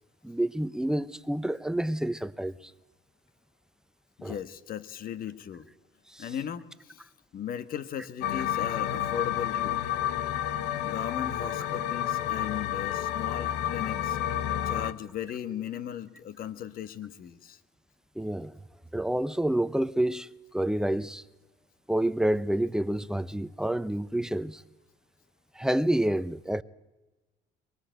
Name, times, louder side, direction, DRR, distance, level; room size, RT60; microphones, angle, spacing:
voice 1, 0.2-2.6 4.2-4.3 6.1-6.2 18.2-18.6 18.9-20.3 20.5-21.2 21.9-24.6 25.6-26.6, right 1 dB, 5° right, 0.7 m, -28 dB
voice 2, 4.2-5.7 6.2-7.1 7.3-9.9 10.8-14.2 14.6-17.6, left 9 dB, 60° left, 1.4 m, -37 dB
sound 1, 8.2-14.9, left 11 dB, 90° left, 1.1 m, -30 dB
23.0 x 20.5 x 7.9 m
cardioid pair, 110°, 17 cm